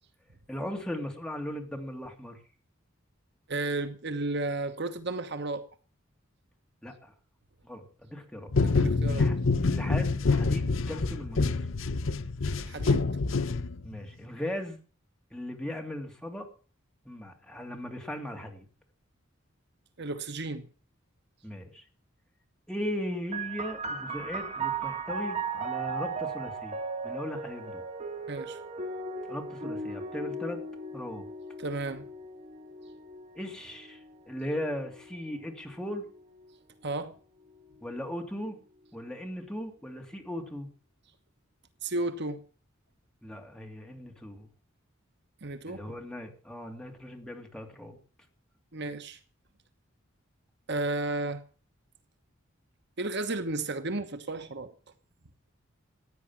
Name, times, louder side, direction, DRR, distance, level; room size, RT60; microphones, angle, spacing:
voice 1, 0.5-2.4 6.8-7.1 7.6-8.5 9.1-9.4 9.6-11.5 13.8-14.8 15.3-16.5 17.0-18.7 21.4-21.8 22.7-26.8 27.0-27.8 29.3-30.6 30.9-31.2 33.3-34.0 34.3-36.0 37.8-38.6 38.9-40.7 43.2-44.5 45.7-48.0, left 1 dB, 5° left, 2.8 m, -38 dB
voice 2, 3.5-5.7 8.6-9.3 12.6-13.0 20.0-20.7 28.3-28.6 31.6-32.1 36.8-37.1 41.8-42.4 45.4-45.8 48.7-49.2 50.7-51.4 53.0-54.7, right 2 dB, 60° right, 1.3 m, -33 dB
sound 1, 8.5-14.0, left 3 dB, 75° left, 0.7 m, -27 dB
sound 2, 23.3-36.5 37.4-38.2, right 4 dB, 35° right, 2.0 m, -37 dB
15.5 x 9.7 x 7.4 m
head